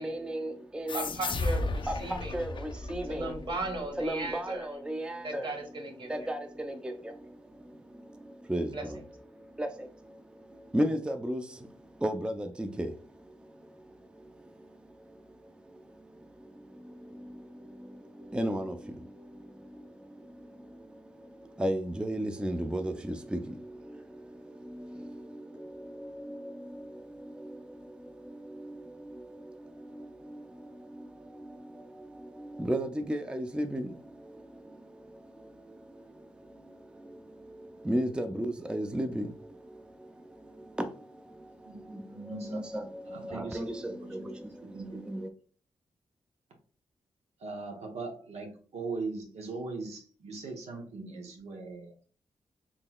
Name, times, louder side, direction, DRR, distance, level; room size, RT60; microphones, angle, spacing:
voice 1, 0.0-1.1 1.8-3.4 4.0-5.6 6.0-45.3, right 1 dB, 10° right, 0.4 m, -37 dB
sound 1, 0.9-4.1, left 2 dB, 45° left, 0.4 m, -34 dB
voice 2, 0.9-2.4 3.1-4.7 5.2-6.1 8.7-8.8, right 2 dB, 50° right, 1.2 m, -36 dB
voice 3, 41.6-42.6 43.1-44.2 44.6-45.0 47.4-51.9, right 3 dB, 80° right, 0.7 m, -40 dB
3.7 x 2.9 x 2.2 m
supercardioid pair, 50°, 11 cm